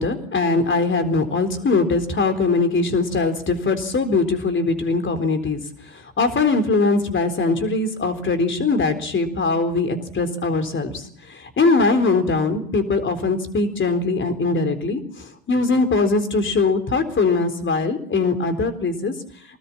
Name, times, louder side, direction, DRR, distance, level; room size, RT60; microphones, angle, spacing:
voice 1, 0.0-19.1, left 3 dB, 25° left, 8 dB, 4.0 m, -21 dB
25.0 x 19.5 x 7.5 m, 0.64 s
figure-of-eight pair, 70°, 48 cm